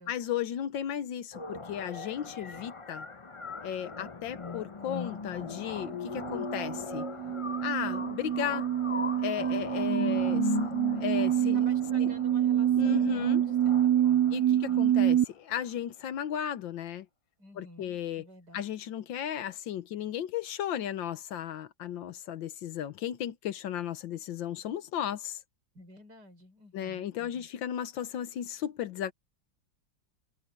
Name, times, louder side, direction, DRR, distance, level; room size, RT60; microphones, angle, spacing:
voice 1, 0.1-3.1 3.6-7.1 7.6-8.7 9.2-11.6 12.0-12.1 12.8-13.4 14.3-17.1 17.6-18.2 18.5-25.4 26.7-29.1, left 9 dB, 75° left, 1.6 m, -35 dB
sound 1, 1.3-15.3, left 4 dB, 45° left, 0.4 m, -39 dB
sound 2, 5.8-15.2, right 11 dB, 70° right, 1.0 m, -27 dB
voice 2, 11.5-15.0 17.4-18.7 25.7-27.5, equal, 55° right, 5.7 m, -52 dB
omnidirectional pair, 2.1 m